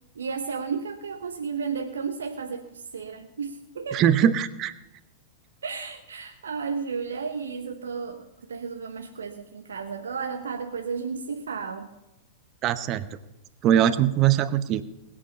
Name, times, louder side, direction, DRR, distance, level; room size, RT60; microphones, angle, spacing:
voice 1, 0.2-4.0 5.6-11.9, right 5 dB, 75° right, 5 dB, 1.0 m, -33 dB
voice 2, 3.9-4.7 12.6-13.1 13.6-14.8, right 10 dB, 35° right, 13 dB, 0.9 m, -21 dB
19.0 x 8.6 x 5.4 m, 0.95 s
figure-of-eight pair, 100°, 0 cm